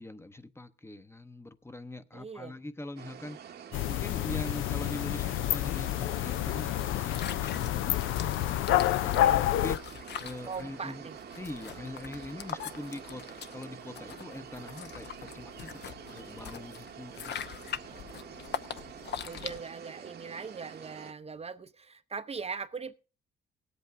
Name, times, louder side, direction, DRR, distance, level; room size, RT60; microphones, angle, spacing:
voice 1, 0.0-8.2 8.7-11.1 11.4-17.3, left 2 dB, 10° left, 0.8 m, -43 dB
voice 2, 2.1-2.5 8.1-8.3 9.1-9.5 10.5-11.2 17.9-18.4 19.2-23.0, right 5 dB, 30° right, 0.6 m, -41 dB
sound 1, 3.0-21.1, right 8 dB, 55° right, 1.0 m, -47 dB
sound 2, 3.7-9.8, left 14 dB, 85° left, 0.5 m, -28 dB
sound 3, 6.8-19.6, left 9 dB, 60° left, 0.8 m, -42 dB
18.5 x 8.3 x 3.5 m
cardioid pair, 90°, 20 cm